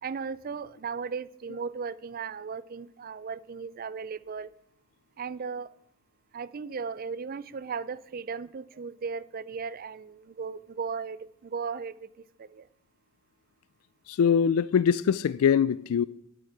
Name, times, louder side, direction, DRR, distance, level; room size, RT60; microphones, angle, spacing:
voice 1, 0.0-4.5 5.2-5.7 6.3-12.1 12.4-12.7, right 5 dB, 40° right, 0.4 m, -36 dB
voice 2, 14.1-16.0, left 7 dB, 85° left, 0.3 m, -23 dB
8.2 x 7.1 x 8.5 m
head